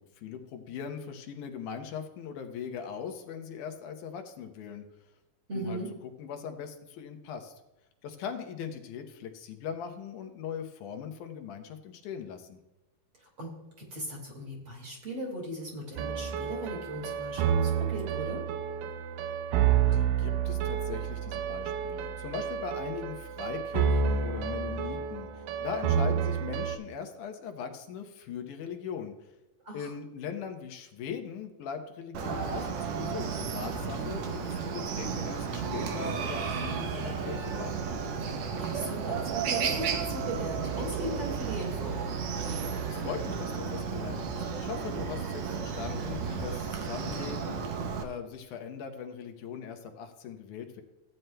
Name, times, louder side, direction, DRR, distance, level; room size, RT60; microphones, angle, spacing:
voice 1, 0.0-4.8 5.5-5.8 6.2-7.5 8.0-12.6 19.9-29.3 29.7-37.8 42.9-50.8, left 7 dB, 75° left, 6 dB, 2.2 m, -40 dB
voice 2, 5.5-5.9 13.2-13.5 13.8-18.4 29.6-29.9 38.5-42.0, right 1 dB, 45° right, -2 dB, 2.5 m, -38 dB
Simple various piano music, 16.0-26.8, right 8 dB, 90° right, 2.4 m, -29 dB
Chicken rooster, 32.1-48.0, right 6 dB, 70° right, 1.7 m, -33 dB
16.0 x 9.2 x 2.2 m, 0.98 s
omnidirectional pair, 3.9 m